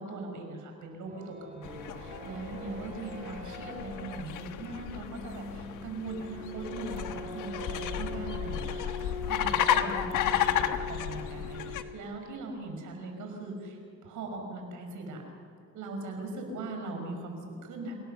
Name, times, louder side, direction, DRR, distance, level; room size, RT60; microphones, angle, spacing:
voice 1, 0.0-15.2 15.7-17.9, right 2 dB, 80° right, 3 dB, 5.6 m, -40 dB
sound 1, 0.8-12.1, left 1 dB, 25° right, 7.9 m, -42 dB
sound 2, 1.6-11.8, left 10 dB, 85° left, 1.3 m, -33 dB
28.5 x 18.5 x 6.9 m, 2.4 s
cardioid pair, 90°, 30 cm